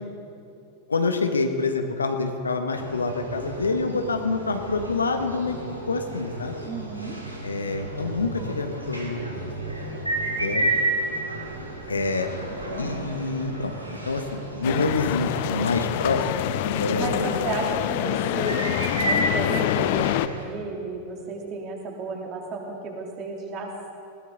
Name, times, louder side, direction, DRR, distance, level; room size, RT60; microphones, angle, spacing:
voice 1, 0.9-5.6 5.9-6.6 7.4-9.5 10.1-10.7 11.9-12.3 12.8-16.5 16.8-17.3, left 3 dB, 75° left, 5 dB, 1.3 m, -27 dB
sound 1, 2.7-20.5, right 1 dB, 85° right, 2.6 m, -32 dB
voice 2, 6.6-7.2 16.7-18.6 19.0-23.9, right 3 dB, 35° right, 0 dB, 3.1 m, -33 dB
sound 2, 14.6-20.3, left 13 dB, 50° left, 0.6 m, -26 dB
20.0 x 17.5 x 4.0 m, 2.5 s
figure-of-eight pair, 90°, 0 cm